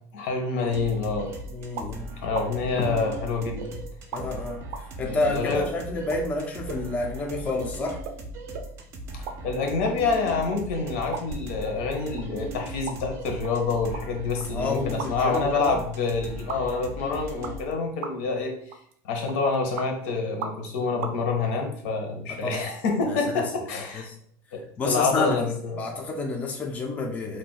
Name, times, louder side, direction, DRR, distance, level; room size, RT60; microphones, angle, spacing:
voice 1, 0.1-1.3 2.2-3.8 5.0-5.7 9.2-18.5 19.0-24.1 24.5-25.8, left 4 dB, 80° left, 3 dB, 0.8 m, -27 dB
sound 1, 0.7-17.6, right 1 dB, 35° right, 0.5 m, -39 dB
voice 2, 1.5-2.1 4.1-4.6 5.0-8.0 14.5-15.8 22.3-22.6 23.1-23.4 23.9-24.1 24.8-25.4 25.8-27.4, left 3 dB, 20° left, 1 dB, 0.4 m, -29 dB
popping sounds, 1.7-1.9 2.3-2.5 3.0-3.7 4.1-4.2 4.7-4.8 5.5-5.6 6.1-6.2 6.7-6.8 7.1-7.2 7.5-7.6 8.0-8.2 8.5-8.7 9.1-9.4 9.6-10.6 11.1-11.8 12.2-12.3 12.9-13.0 13.4-15.3 15.5-15.6 16.5-16.6 17.4-17.7 18.0-18.3 18.7-18.9 19.3-19.9 20.4-20.7 21.0-21.1, right 5 dB, 90° right, 0.5 m, -37 dB
2.4 x 2.1 x 3.9 m, 0.64 s
cardioid pair, 155°, 7 cm